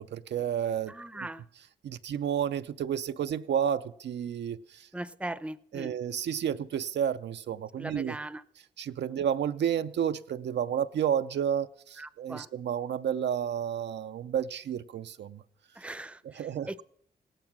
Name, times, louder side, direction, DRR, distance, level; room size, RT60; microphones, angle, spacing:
voice 1, 0.0-0.9 1.8-4.9 5.7-8.1 8.8-15.4 16.4-16.7, right 9 dB, 70° right, 0.5 m, -31 dB
voice 2, 0.9-1.4 4.9-6.0 7.8-8.4 12.0-12.5 15.7-16.8, right 1 dB, 5° right, 0.6 m, -39 dB
17.0 x 9.0 x 6.0 m
cardioid pair, 50°, 19 cm